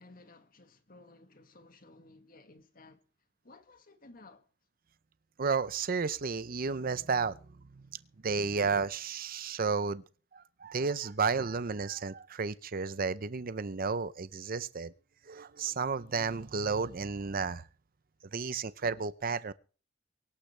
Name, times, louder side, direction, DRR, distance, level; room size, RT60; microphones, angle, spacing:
voice 1, 0.0-3.0 3.4-4.4, left 2 dB, 50° left, 1.9 m, -56 dB
voice 2, 5.4-7.4 7.7-7.9 8.2-10.0 10.3-14.9 15.3-17.6 18.3-19.5, right 5 dB, 50° right, 0.6 m, -32 dB
24.0 x 12.0 x 3.3 m
head